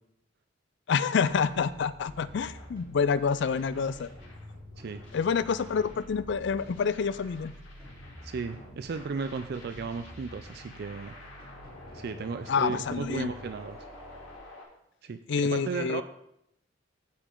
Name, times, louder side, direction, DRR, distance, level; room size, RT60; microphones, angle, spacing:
voice 1, 0.9-4.1 5.1-7.5 12.5-13.3 15.3-16.0, left 6 dB, 65° left, 16 dB, 0.4 m, -27 dB
sound 1, 1.2-14.4, equal, 25° right, 3.4 m, -48 dB
sound 2, 2.2-14.6, left 2 dB, 80° left, 2.5 m, -51 dB
voice 2, 8.2-11.1 11.9-13.8 15.0-16.0, right 4 dB, 55° right, 9 dB, 0.4 m, -35 dB
15.0 x 5.1 x 3.8 m, 0.79 s
head